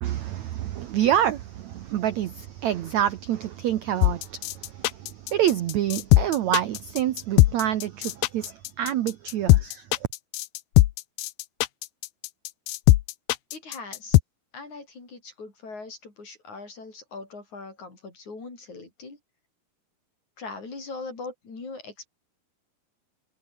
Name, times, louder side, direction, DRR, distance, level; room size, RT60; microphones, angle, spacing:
voice 1, 0.0-4.4 4.7-9.8, right 11 dB, 75° right, 1.7 m, -27 dB
sound 1, 4.0-14.2, left 18 dB, 80° left, 2.8 m, -20 dB
voice 2, 13.5-14.2 14.5-19.2 20.4-22.1, left 3 dB, 45° left, 8.2 m, -40 dB
omnidirectional pair, 4.5 m